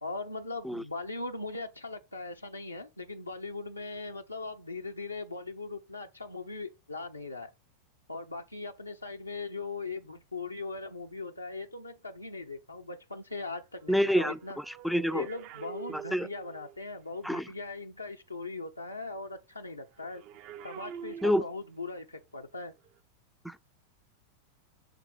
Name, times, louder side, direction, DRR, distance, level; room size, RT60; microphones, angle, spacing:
voice 1, 0.0-7.5 8.1-14.6 15.1-20.2 20.6-22.7, left 3 dB, 85° left, 0.7 m, -39 dB
voice 2, 13.9-15.3 15.9-16.3 17.2-17.4 21.2-21.4 23.4-23.6, equal, ahead, 0.4 m, -28 dB
sound 1, 14.1-16.9 20.0-21.9 22.8-23.0, right 8 dB, 45° right, 0.6 m, -46 dB
6.9 x 3.7 x 4.5 m
figure-of-eight pair, 90°, 0 cm